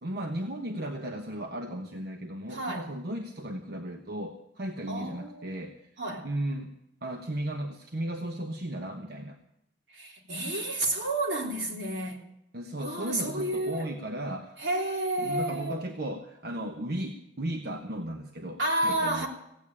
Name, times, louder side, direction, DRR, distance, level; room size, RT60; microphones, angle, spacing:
voice 1, 0.0-5.9 6.2-6.7 7.0-9.4 12.5-14.6 15.2-19.3, right 1 dB, 60° right, 4 dB, 1.1 m, -35 dB
voice 2, 2.5-2.9 4.9-5.6 6.0-6.3 9.9-12.2 12.8-13.9 14.6-15.8 18.6-19.3, right 1 dB, 85° right, 0 dB, 3.3 m, -30 dB
16.5 x 8.7 x 8.7 m, 0.83 s
head